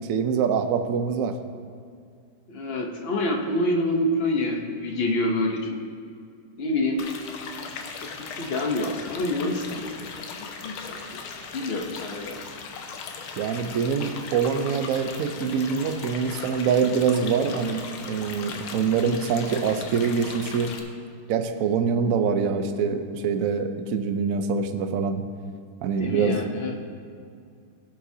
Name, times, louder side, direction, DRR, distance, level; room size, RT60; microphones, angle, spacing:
voice 1, 0.1-1.3 13.4-17.8 18.1-20.7 21.3-25.2 25.8-26.4, right 6 dB, 80° right, 8 dB, 0.7 m, -24 dB
voice 2, 2.5-5.8 6.6-7.0 8.0-11.2 11.5-12.5 26.0-26.7, left 1 dB, 50° left, 1 dB, 0.7 m, -27 dB
sound 1, 7.0-20.8, left 5 dB, 85° left, 1.7 m, -38 dB
16.5 x 7.6 x 2.8 m, 2.3 s
omnidirectional pair, 2.3 m